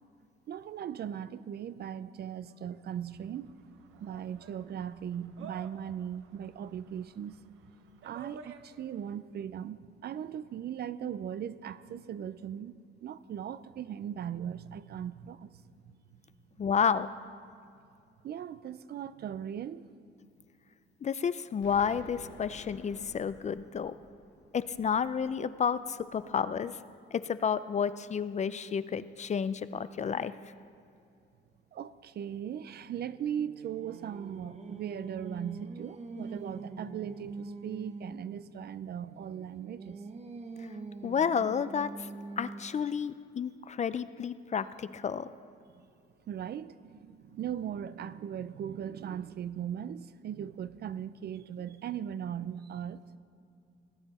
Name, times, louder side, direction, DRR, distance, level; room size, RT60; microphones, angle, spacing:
voice 1, 0.5-3.5 4.0-7.3 8.0-15.6 18.2-19.9 31.7-40.0 46.3-53.0, right 9 dB, 55° right, 0.5 m, -38 dB
sound 1, 2.7-9.1, right 6 dB, 80° right, 0.8 m, -53 dB
voice 2, 16.6-17.1 21.0-23.9 24.5-26.8 27.1-30.3 40.6-40.7 41.0-42.1 42.4-45.3, left 7 dB, 35° left, 0.4 m, -31 dB
Explosion, 21.6-26.5, left 5 dB, 75° left, 1.1 m, -53 dB
Singing, 32.9-38.3 39.0-42.8, right 3 dB, 35° right, 0.9 m, -44 dB
18.5 x 8.9 x 4.2 m
cardioid pair, 90°, 20 cm